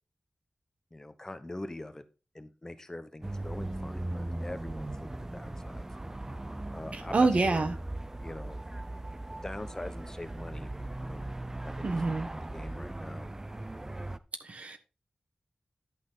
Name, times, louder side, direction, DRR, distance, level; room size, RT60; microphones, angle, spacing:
voice 1, 0.9-2.0 2.3-5.9 6.7-7.6 8.2-8.6 9.3-11.4 11.6-12.2 12.5-13.3, left 1 dB, 20° left, 0.9 m, -43 dB
sound 1, 3.2-14.2, right 1 dB, 20° right, 0.6 m, -39 dB
voice 2, 6.9-7.7 11.8-12.3 14.4-14.8, right 3 dB, 60° right, 1.2 m, -27 dB
11.0 x 6.1 x 3.9 m
wide cardioid pair, 110°, 3 cm